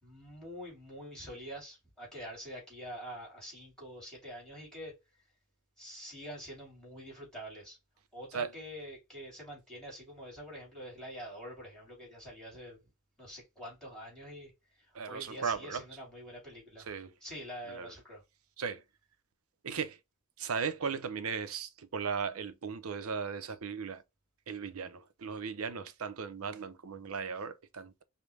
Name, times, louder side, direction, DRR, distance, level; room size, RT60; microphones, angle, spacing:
voice 1, 0.0-5.0 5.8-7.8 8.1-12.8 13.2-16.9 17.2-18.2, equal, 5° left, 2.7 m, -46 dB
voice 2, 14.9-15.8 16.9-17.1 17.7-17.9 18.6-18.8 19.6-20.0 20.4-24.0 24.5-28.0, right 6 dB, 80° right, 0.6 m, -37 dB
5.1 x 2.2 x 3.3 m
head